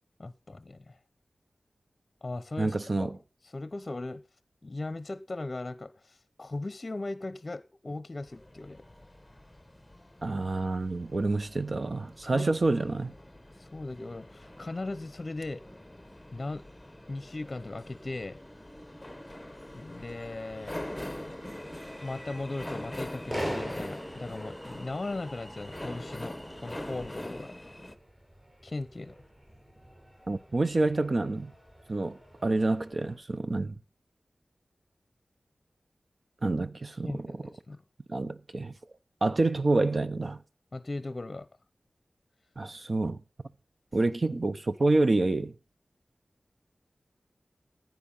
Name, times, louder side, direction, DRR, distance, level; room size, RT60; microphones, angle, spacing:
voice 1, 0.2-1.0 2.2-4.2 4.6-8.8 12.2-12.5 13.6-15.6 16.3-16.6 17.1-18.4 19.7-20.8 22.0-27.5 28.6-29.2 37.1-37.8 40.7-41.5, left 2 dB, 40° left, 0.7 m, -38 dB
voice 2, 2.6-3.2 10.2-13.1 30.3-31.5 31.9-33.8 36.4-37.4 38.1-38.7 39.2-40.4 42.6-43.2 43.9-45.5, right 2 dB, 45° right, 0.9 m, -28 dB
sound 1, 8.2-28.0, left 1 dB, 10° left, 1.1 m, -43 dB
sound 2, 19.9-33.1, equal, 25° right, 7.3 m, -45 dB
15.0 x 9.2 x 5.6 m
wide cardioid pair, 90°, 0 cm